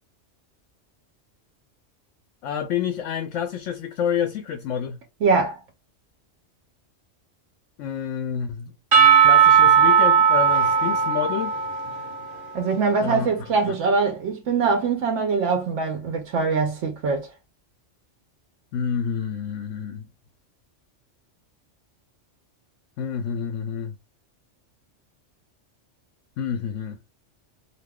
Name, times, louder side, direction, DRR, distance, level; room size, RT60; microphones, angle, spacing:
voice 1, 2.4-5.0 7.8-8.7 9.2-11.5 13.0-13.3 13.7-13.8 18.7-20.1 23.0-24.0 26.4-27.0, left 8 dB, 85° left, 0.9 m, -28 dB
voice 2, 5.2-5.6 12.5-17.3, right 4 dB, 85° right, 1.0 m, -23 dB
Percussion / Church bell, 8.9-12.8, right 7 dB, 50° right, 0.9 m, -17 dB
2.7 x 2.2 x 3.4 m
omnidirectional pair, 1.2 m